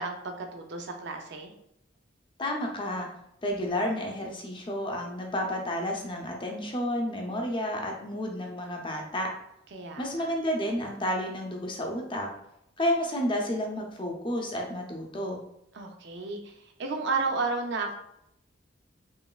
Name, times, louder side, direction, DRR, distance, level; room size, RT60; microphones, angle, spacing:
voice 1, 0.0-1.5 9.7-10.3 15.7-18.0, right 3 dB, 60° right, 4 dB, 0.4 m, -33 dB
voice 2, 2.4-3.1 3.4-9.3 10.0-12.3 12.8-15.4, equal, 25° left, 1 dB, 0.6 m, -31 dB
3.1 x 2.9 x 2.3 m, 0.79 s
head